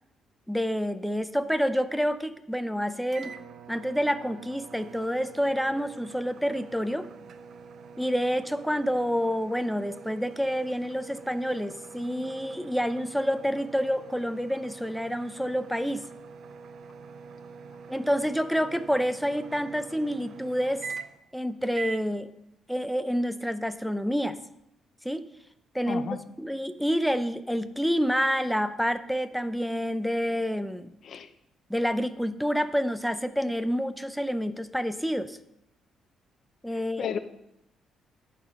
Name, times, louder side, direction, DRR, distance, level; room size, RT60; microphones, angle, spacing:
voice 1, 0.5-3.3 3.7-7.1 8.0-16.1 17.9-20.8 21.3-22.3 22.7-24.4 25.0-25.3 25.7-26.0 26.4-30.9 31.7-35.4 36.6-37.1, equal, ahead, 11 dB, 0.5 m, -28 dB
sound 1, 3.1-21.3 21.7-22.1, right 5 dB, 60° right, 0.5 m, -44 dB
voice 2, 25.9-26.2 31.0-31.3 36.7-37.2, left 8 dB, 60° left, 10 dB, 0.6 m, -33 dB
11.0 x 4.1 x 5.2 m, 0.82 s
cardioid pair, 90°, 0 cm